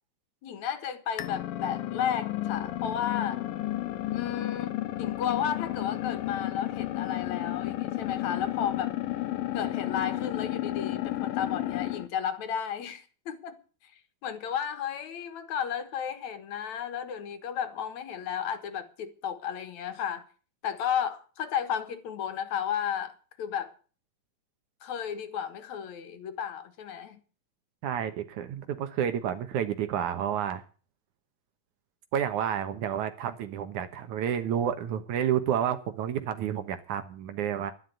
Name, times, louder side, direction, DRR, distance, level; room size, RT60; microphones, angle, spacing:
voice 1, 0.4-3.4 4.1-8.9 9.5-13.9 14.2-20.2 20.6-23.7 24.8-27.2, left 8 dB, 60° left, 2.5 m, -33 dB
sound 1, 1.2-12.1, left 15 dB, 80° left, 2.7 m, -32 dB
voice 2, 27.8-30.6 32.1-37.7, right 9 dB, 65° right, 2.4 m, -30 dB
12.0 x 11.0 x 8.2 m
omnidirectional pair, 4.1 m